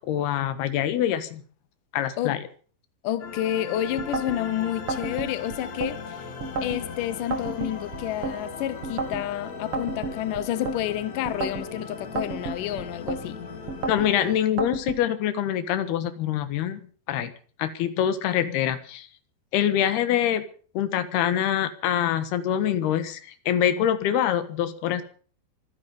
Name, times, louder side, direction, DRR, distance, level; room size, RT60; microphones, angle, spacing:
voice 1, 0.0-1.4 1.9-2.4 13.9-16.8 17.1-17.3 17.6-19.1 19.5-20.4 20.7-25.0, left 10 dB, 90° left, 3.4 m, -25 dB
voice 2, 3.0-6.2 6.6-13.4, left 12 dB, 65° left, 2.4 m, -29 dB
sound 1, 3.2-14.4, left 5 dB, 50° left, 3.0 m, -38 dB
sound 2, 4.0-4.4 4.9-5.9 6.4-6.8 7.3-8.4 8.8-9.2 9.7-10.8 11.3-11.7 12.2-13.2 13.7-14.1 14.6-15.0, right 4 dB, 45° right, 2.3 m, -31 dB
24.5 x 10.5 x 5.3 m
omnidirectional pair, 4.5 m